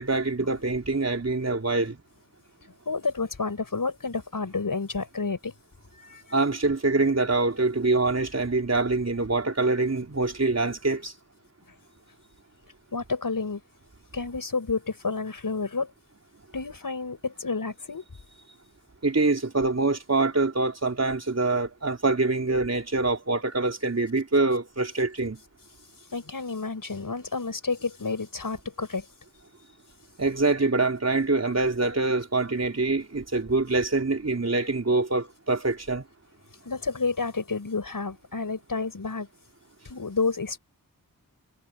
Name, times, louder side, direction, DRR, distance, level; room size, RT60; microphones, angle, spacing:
voice 1, 0.0-2.0 6.3-11.1 19.0-25.4 30.2-36.0, right 3 dB, 45° right, 4.1 m, -25 dB
voice 2, 2.8-5.5 6.0-6.2 12.9-13.6 14.1-15.9 16.5-18.0 26.1-29.0 36.6-39.3 39.8-40.6, left 4 dB, 65° left, 6.8 m, -30 dB
wide cardioid pair, 80°, 35 cm